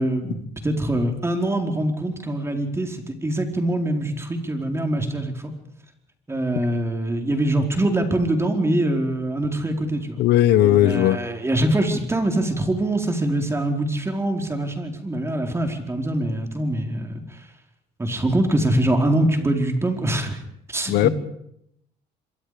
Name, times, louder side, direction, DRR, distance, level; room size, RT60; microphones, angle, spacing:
voice 1, 0.0-5.5 6.3-10.2 10.6-17.2 18.0-20.4 20.7-21.1, right 1 dB, 15° right, 4 dB, 4.6 m, -24 dB
voice 2, 10.2-11.2 20.9-21.1, left 13 dB, 85° left, 14 dB, 1.3 m, -17 dB
26.0 x 24.0 x 5.2 m, 0.75 s
cardioid pair, 110°, 17 cm